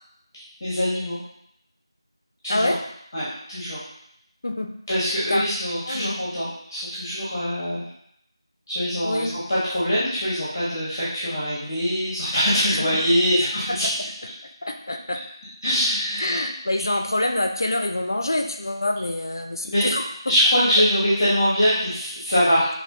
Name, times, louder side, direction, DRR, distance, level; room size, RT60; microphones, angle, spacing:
voice 1, 0.6-1.2 2.4-2.7 3.1-3.8 4.9-7.8 8.7-13.9 15.6-16.4 19.6-19.9 20.3-22.7, equal, 20° left, -10 dB, 1.2 m, -23 dB
voice 2, 2.5-2.8 4.4-4.7 5.3-5.4 5.9-6.2 9.0-9.4 12.7-13.0 13.3-13.4 13.7-13.8 14.6-15.2 16.2-20.0, left 1 dB, 45° left, 4 dB, 0.5 m, -26 dB
6.0 x 3.0 x 2.7 m, 0.73 s
figure-of-eight pair, 175°, 3 cm